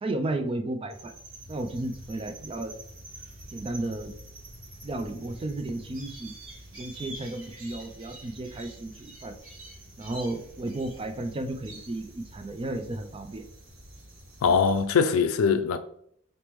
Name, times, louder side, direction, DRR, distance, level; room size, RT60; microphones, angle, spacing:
voice 1, 0.0-1.1 1.5-2.7 3.5-4.1 4.8-6.3 6.7-9.3 10.0-13.5, right 2 dB, 25° right, 0.3 m, -33 dB
sound 1, 0.9-14.8, right 1 dB, 70° right, 1.5 m, -46 dB
voice 2, 14.4-15.8, left 5 dB, 85° left, 0.4 m, -22 dB
4.1 x 3.4 x 3.0 m
head